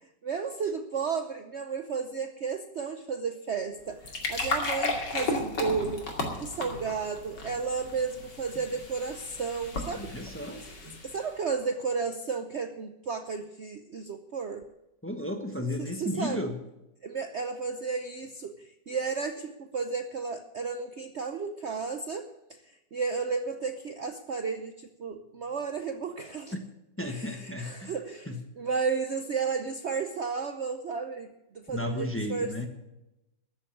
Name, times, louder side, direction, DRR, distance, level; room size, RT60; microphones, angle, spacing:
voice 1, 0.0-6.1 6.4-10.2 10.5-10.7 11.0-14.6 15.8-16.4 17.0-22.3 22.9-26.5 27.1-28.3 28.6-31.3 31.5-32.7, right 5 dB, 50° right, 7 dB, 0.9 m, -33 dB
sound 1, 3.8-11.3, left 3 dB, 85° left, 3.1 m, -35 dB
voice 2, 10.0-10.6 15.0-16.6 26.5-26.6 27.0-28.0 28.3-28.4 31.7-32.7, left 1 dB, 10° left, 5 dB, 1.2 m, -33 dB
14.0 x 7.1 x 9.8 m, 0.93 s
omnidirectional pair, 1.8 m